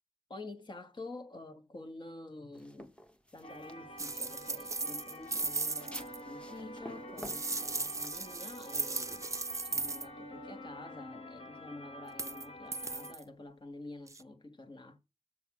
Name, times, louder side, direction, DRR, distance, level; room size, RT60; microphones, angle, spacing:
voice 1, 0.3-2.9 3.3-9.3 9.6-15.0, left 2 dB, 50° left, 1.6 m, -48 dB
sound 1, 2.5-9.1, left 1 dB, 10° left, 1.2 m, -52 dB
sound 2, 3.4-13.2, equal, 80° left, 1.7 m, -48 dB
sound 3, 4.0-6.2 7.2-10.1 12.1-12.5 12.7-13.2 14.1-14.2, right 3 dB, 30° right, 0.5 m, -37 dB
8.0 x 7.0 x 4.8 m
cardioid pair, 60°, 10 cm